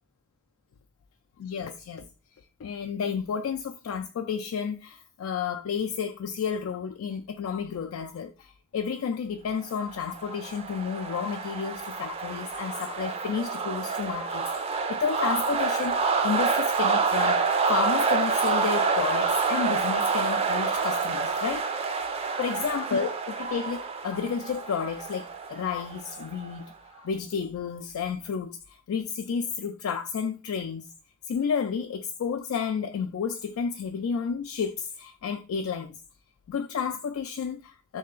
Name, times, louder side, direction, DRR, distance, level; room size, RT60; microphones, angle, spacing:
voice 1, 1.4-2.0 2.6-14.5 14.9-17.4 17.7-21.6 22.4-26.7 27.0-30.9 31.3-36.0 36.5-38.0, left 6 dB, 90° left, 0.3 m, -31 dB
sound 1, 9.9-26.6, right 5 dB, 30° right, 0.4 m, -28 dB
3.2 x 2.8 x 3.7 m
head